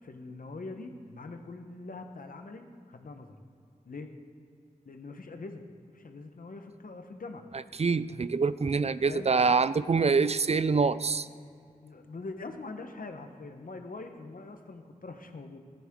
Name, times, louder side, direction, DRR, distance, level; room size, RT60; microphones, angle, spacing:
voice 1, 0.0-3.3 3.8-4.1 4.8-5.6 5.9-7.5 9.1-9.3 11.8-15.6, left 3 dB, 75° left, 6 dB, 1.0 m, -43 dB
voice 2, 7.8-11.3, right 4 dB, 45° right, 15 dB, 0.4 m, -25 dB
14.5 x 10.5 x 3.7 m, 2.4 s
wide cardioid pair, 45°, 14 cm